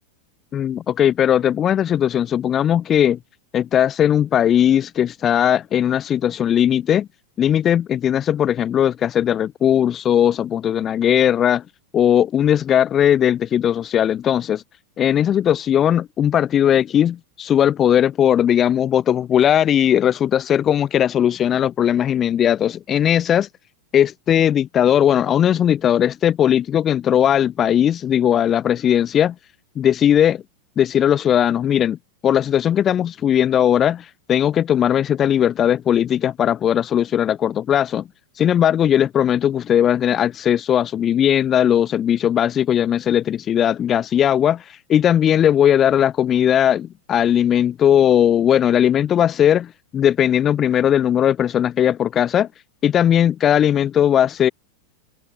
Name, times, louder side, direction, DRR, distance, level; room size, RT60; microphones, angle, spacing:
voice 1, 0.5-3.2 3.5-7.1 7.4-11.6 11.9-14.6 15.0-23.5 23.9-29.3 29.8-30.4 30.8-32.0 32.2-38.1 38.4-52.5 52.8-54.5, left 10 dB, 25° left, 0.4 m, -18 dB
figure-of-eight pair, 90°, 0 cm